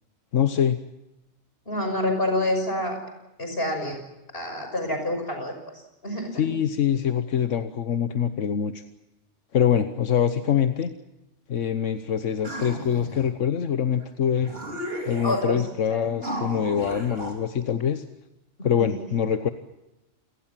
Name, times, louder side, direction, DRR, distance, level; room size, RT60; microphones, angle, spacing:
voice 1, 0.3-0.8 6.4-8.8 9.5-10.9 11.5-14.5 15.1-18.0 18.6-19.5, left 8 dB, 85° left, 9 dB, 1.4 m, -24 dB
voice 2, 1.7-3.0 3.4-4.0 4.3-6.5 15.2-15.6 15.9-16.1 18.8-18.9, left 1 dB, 50° left, 5 dB, 6.4 m, -28 dB
sound 1, 12.4-13.3 14.0-14.1 14.4-15.5 16.2-17.4, right 1 dB, 55° right, 4.3 m, -34 dB
28.5 x 20.0 x 7.5 m, 0.96 s
omnidirectional pair, 1.2 m